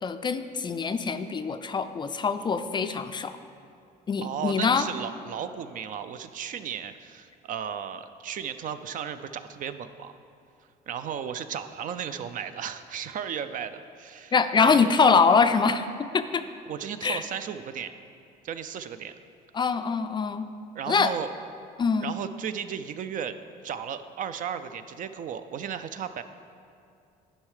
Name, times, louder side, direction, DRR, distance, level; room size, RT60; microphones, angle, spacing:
voice 1, 0.0-3.4 4.1-4.9 14.3-16.4 17.0-17.2 19.5-20.5 20.9-21.1 21.8-22.1, left 5 dB, 25° left, 10 dB, 0.3 m, -24 dB
voice 2, 4.2-10.1 10.9-15.0 16.7-17.9 18.4-19.1 20.7-21.3 22.0-23.3 23.6-26.2, right 8 dB, 50° right, 10 dB, 0.4 m, -35 dB
10.5 x 5.5 x 4.8 m, 2.5 s
cardioid pair, 110°, 17 cm